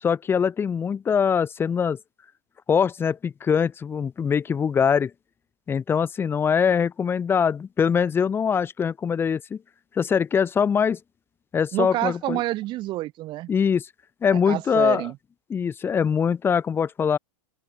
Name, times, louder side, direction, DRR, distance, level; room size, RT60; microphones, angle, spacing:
voice 1, 0.0-2.0 2.7-5.1 5.7-9.6 10.0-11.0 11.5-12.4 13.5-13.9 14.2-15.1 15.5-17.2, left 7 dB, 15° left, 1.6 m, -23 dB
voice 2, 11.7-13.5 14.5-15.2, right 17 dB, 30° right, 2.8 m, -28 dB
open air
supercardioid pair, 150°, 15 cm